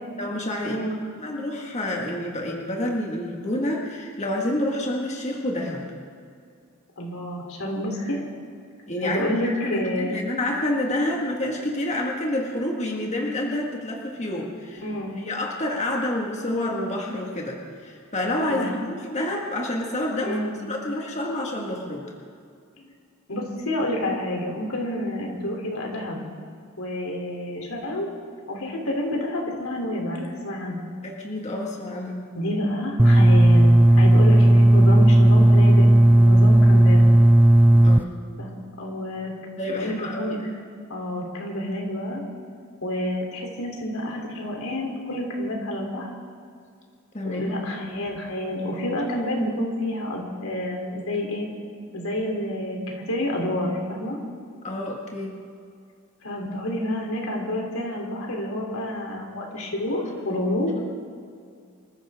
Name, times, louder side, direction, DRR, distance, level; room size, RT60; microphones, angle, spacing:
voice 1, 0.1-0.8 1.2-5.8 8.9-14.8 15.2-20.4 20.7-22.1 31.0-32.3 37.8-38.1 39.6-40.4 47.1-47.5 54.6-55.4, left 1 dB, 35° left, -1 dB, 1.9 m, -28 dB
voice 2, 0.7-1.0 7.0-8.2 9.0-10.2 14.8-15.2 18.5-18.8 20.2-20.6 22.8-22.9 23.3-26.2 26.8-28.1 28.5-30.9 32.3-35.9 36.2-37.0 38.4-39.3 39.6-40.4 40.9-42.2 42.8-46.1 47.2-51.5 51.9-54.2 56.2-60.7, left 1 dB, 85° left, 0 dB, 3.4 m, -29 dB
sound 1, 33.0-38.0, right 1 dB, 10° right, 0.4 m, -14 dB
27.0 x 14.5 x 3.7 m, 2.3 s
head